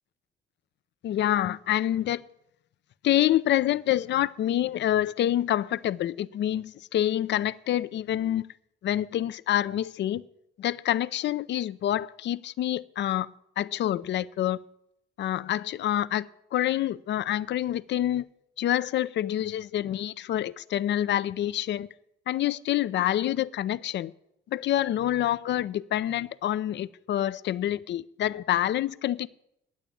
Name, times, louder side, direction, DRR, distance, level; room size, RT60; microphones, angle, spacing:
voice 1, 1.0-2.2 3.0-8.4 8.8-10.2 10.6-14.6 15.2-18.3 18.6-21.9 22.3-24.1 24.5-29.3, left 12 dB, 65° left, 0.5 m, -27 dB
10.5 x 9.1 x 8.4 m
cardioid pair, 90°, 20 cm